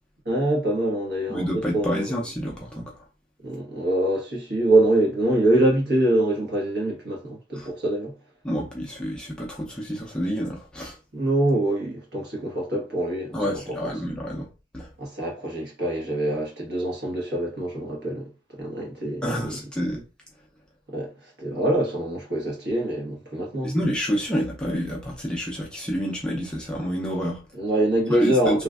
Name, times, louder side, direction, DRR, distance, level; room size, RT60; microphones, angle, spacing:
voice 1, 0.2-2.1 3.4-8.1 11.1-13.4 13.7-13.9 15.0-19.6 20.9-23.8 27.5-28.6, right 1 dB, 55° right, 1.2 m, -24 dB
voice 2, 1.3-2.9 7.5-7.7 8.4-11.0 13.3-14.5 14.7-14.9 19.2-20.0 23.6-27.4 28.1-28.6, equal, 5° left, 0.5 m, -28 dB
3.1 x 2.4 x 2.3 m
head